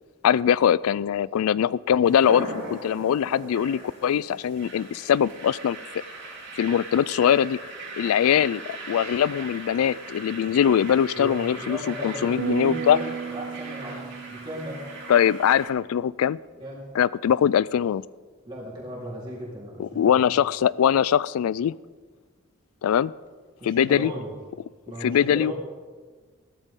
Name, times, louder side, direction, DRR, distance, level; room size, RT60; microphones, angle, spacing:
voice 1, 0.2-5.8 6.5-7.6 7.9-13.0 15.1-16.4 16.9-18.0 19.8-21.8 22.8-23.1 23.6-24.1 25.0-25.5, left 9 dB, 85° left, 21 dB, 0.3 m, -22 dB
sound 1, 2.0-15.7, right 2 dB, 55° right, 3.4 m, -40 dB
voice 2, 11.1-14.9 16.6-16.8 18.5-20.2 23.6-24.3 24.9-25.5, equal, 20° right, -6 dB, 3.8 m, -36 dB
sound 2, 12.4-15.8, right 7 dB, 70° right, 1.1 m, -35 dB
15.5 x 13.5 x 3.7 m, 1.5 s
head